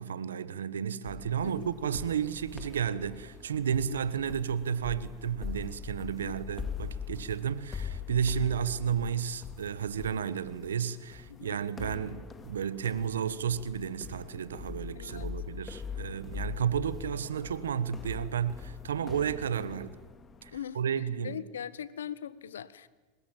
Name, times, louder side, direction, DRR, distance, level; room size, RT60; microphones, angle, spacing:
voice 1, 0.0-20.0 20.4-21.4, right 8 dB, 90° right, 1.2 m, -32 dB
sound 1, 1.1-20.6, left 6 dB, 25° left, 2.3 m, -43 dB
voice 2, 14.9-15.3 20.5-22.9, left 9 dB, 85° left, 1.1 m, -41 dB
24.5 x 21.0 x 9.1 m
hypercardioid pair, 95°, 0 cm